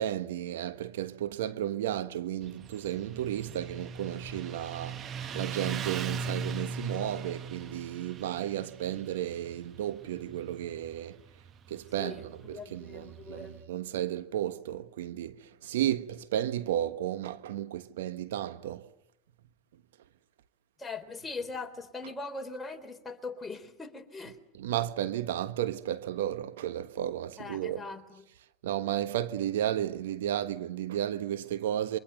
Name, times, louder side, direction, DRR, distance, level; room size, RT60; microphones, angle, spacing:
voice 1, 0.0-11.2 11.7-18.9 22.0-22.1 24.5-27.9 28.6-32.0, right 11 dB, 80° right, 1.3 m, -33 dB
Motorcycle, 2.4-13.5, right 5 dB, 40° right, 1.3 m, -40 dB
voice 2, 12.5-13.6 20.8-24.4 27.4-28.0, left 3 dB, 15° left, 3.7 m, -40 dB
28.0 x 25.0 x 8.1 m
hypercardioid pair, 100°, 0 cm